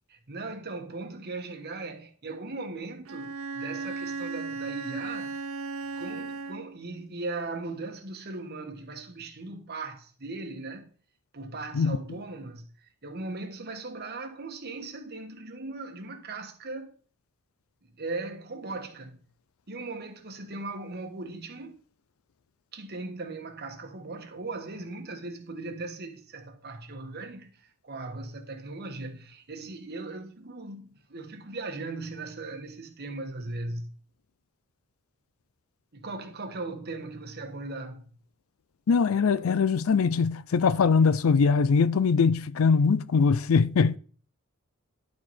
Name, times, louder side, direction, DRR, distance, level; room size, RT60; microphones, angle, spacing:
voice 1, 0.1-5.3 5.9-10.9 11.3-16.9 17.8-19.2 19.7-21.8 22.7-33.9 35.9-38.1, right 3 dB, 50° right, 1.3 m, -38 dB
Bowed string instrument, 3.0-6.9, right 4 dB, 80° right, 0.8 m, -36 dB
voice 2, 38.9-44.0, left 5 dB, 75° left, 0.4 m, -22 dB
11.0 x 4.7 x 4.2 m
head